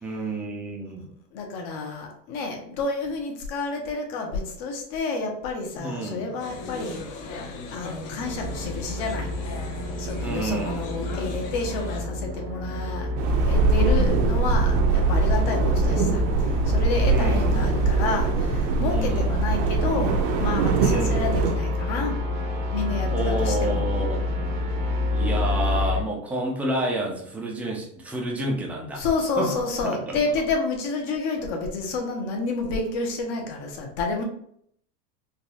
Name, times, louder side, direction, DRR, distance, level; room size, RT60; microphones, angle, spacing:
voice 1, 0.0-1.1 5.8-6.3 10.2-10.7 17.1-17.6 18.9-19.3 20.8-21.2 23.1-24.3 25.1-29.0 29.4-29.5, right 1 dB, 5° right, -2 dB, 0.3 m, -29 dB
voice 2, 1.3-9.3 10.0-22.2 22.7-23.9 28.9-34.2, left 3 dB, 55° left, 2 dB, 1.1 m, -30 dB
sound 1, 6.4-12.0, left 3 dB, 40° left, 0.6 m, -39 dB
sound 2, 8.2-26.0, left 2 dB, 90° right, 1.0 m, -28 dB
sound 3, 13.2-21.6, right 4 dB, 70° right, 0.7 m, -23 dB
3.9 x 2.3 x 2.8 m, 0.67 s
supercardioid pair, 110°, 50 cm